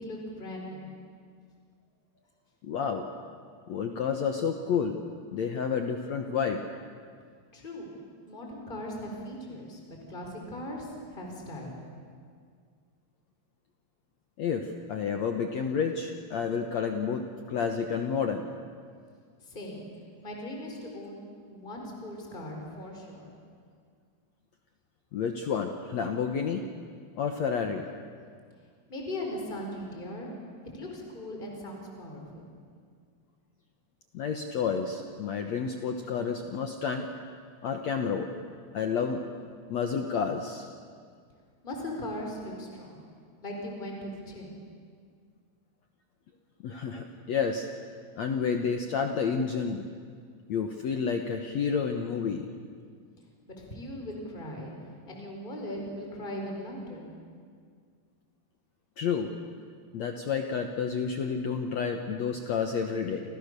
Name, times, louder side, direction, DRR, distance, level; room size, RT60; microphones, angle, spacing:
voice 1, 0.0-0.9 7.5-7.9 8.3-9.8 10.1-11.8 19.4-19.8 20.2-23.3 28.9-30.3 30.6-32.5 41.6-43.1 43.4-44.5 53.5-54.7 55.1-57.0, left 1 dB, 10° left, 0 dB, 4.7 m, -39 dB
voice 2, 2.6-3.1 3.7-5.0 5.3-6.6 14.4-18.5 25.1-26.6 27.2-27.8 34.1-37.1 37.6-38.3 38.7-39.2 39.7-40.7 46.6-47.7 48.2-49.8 50.5-52.5 59.0-59.3 59.9-63.2, left 6 dB, 70° left, 4 dB, 1.6 m, -30 dB
30.0 x 27.5 x 6.8 m, 2.1 s
omnidirectional pair, 4.9 m